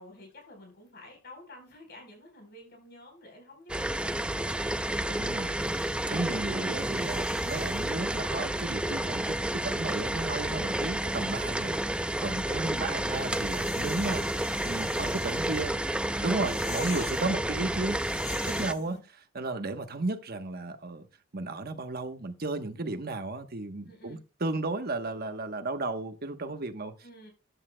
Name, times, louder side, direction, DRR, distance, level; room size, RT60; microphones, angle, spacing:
voice 1, 0.0-4.6 10.4-10.8 12.3-12.9 15.0-15.9 18.7-19.1 23.8-24.2 27.0-27.3, equal, 55° left, 4.2 m, -51 dB
sound 1, 3.7-18.7, right 1 dB, 5° right, 0.4 m, -30 dB
voice 2, 5.1-5.8 6.1-15.7 16.2-18.0 18.3-19.0 19.3-21.1 21.3-26.9, right 2 dB, 50° right, 1.1 m, -34 dB
sound 2, 5.6-19.0, left 6 dB, 35° left, 1.9 m, -47 dB
13.5 x 10.0 x 2.2 m
head